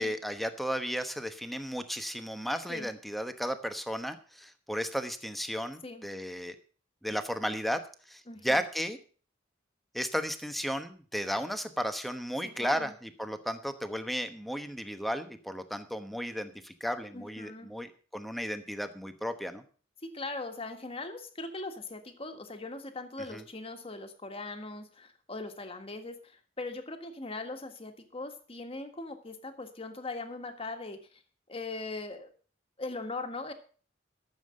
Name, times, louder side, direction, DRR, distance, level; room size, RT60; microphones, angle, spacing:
voice 1, 0.0-6.6 7.0-7.8 8.1-9.0 9.9-19.6 23.3-23.4, equal, ahead, 8 dB, 1.0 m, -34 dB
voice 2, 8.3-8.6 12.4-12.9 17.1-17.7 20.0-31.0 31.5-32.3 32.8-33.5, left 3 dB, 30° left, 6 dB, 1.6 m, -40 dB
13.5 x 7.2 x 6.4 m, 0.41 s
head